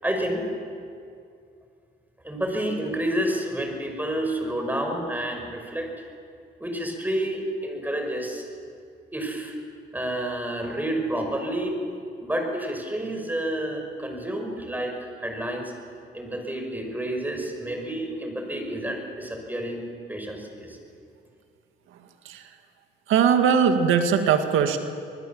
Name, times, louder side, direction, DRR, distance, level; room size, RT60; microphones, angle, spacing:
voice 1, 0.0-0.5 2.2-6.1 6.6-8.4 9.1-9.6 9.9-11.8 12.2-15.7 16.1-20.8, right 1 dB, 10° right, 3 dB, 5.8 m, -29 dB
voice 2, 23.1-24.8, right 7 dB, 90° right, 6 dB, 2.0 m, -20 dB
26.0 x 20.0 x 7.3 m, 2.3 s
cardioid pair, 90°, 20 cm